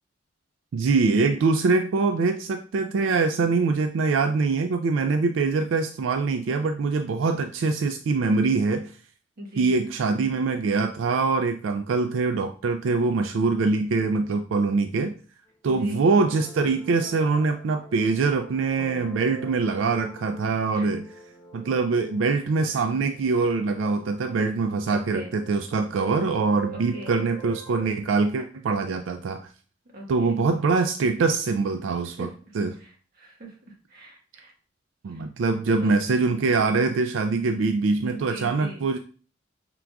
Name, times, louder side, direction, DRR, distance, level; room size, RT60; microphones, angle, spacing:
voice 1, 0.7-8.9 9.6-15.1 15.6-21.1 21.5-29.5 30.1-32.8 35.0-39.0, right 4 dB, 85° right, 7 dB, 0.4 m, -24 dB
voice 2, 9.4-9.7 15.7-16.0 20.8-20.9 24.9-25.3 26.7-27.2 29.9-30.4 32.2-32.3 32.8-32.9 33.2-33.5 33.9-34.5 35.1-35.9 38.0-38.8, equal, 50° right, 0 dB, 1.3 m, -40 dB
sound 1, 15.7-27.9, right 5 dB, 20° left, 0.9 m, -45 dB
5.8 x 3.8 x 2.3 m, 0.40 s
head